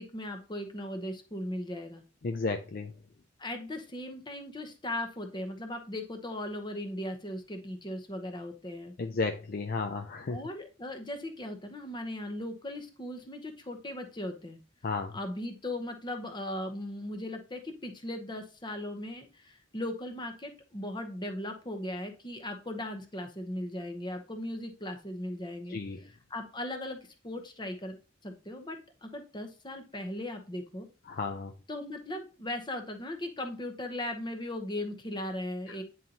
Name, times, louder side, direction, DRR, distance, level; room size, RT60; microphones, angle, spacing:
voice 1, 0.0-2.0 3.4-8.9 10.3-14.6 15.1-27.0 27.2-28.0 28.2-30.9 31.7-35.8, left 1 dB, 20° left, 5 dB, 0.9 m, -38 dB
voice 2, 2.2-2.9 9.0-10.4 14.8-15.1 25.7-26.0 31.1-31.5 35.7-35.8, left 3 dB, 45° left, 6 dB, 0.4 m, -33 dB
9.0 x 3.9 x 2.9 m, 0.34 s
head